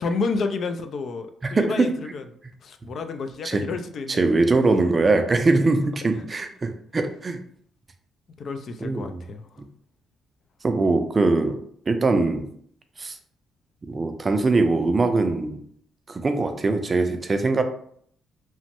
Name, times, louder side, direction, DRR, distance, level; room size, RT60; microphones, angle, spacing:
voice 1, 0.0-2.3 2.6-4.4 5.6-5.8 6.0-6.3 8.4-9.6, left 4 dB, 55° left, 7 dB, 0.3 m, -30 dB
voice 2, 1.5-1.9 3.4-3.6 4.1-7.4 8.8-9.0 10.6-11.6 11.9-12.5 13.0-13.2 13.8-15.6 16.1-17.6, right 3 dB, 30° right, 7 dB, 0.4 m, -22 dB
3.0 x 2.0 x 2.9 m, 0.64 s
cardioid pair, 90°, 0 cm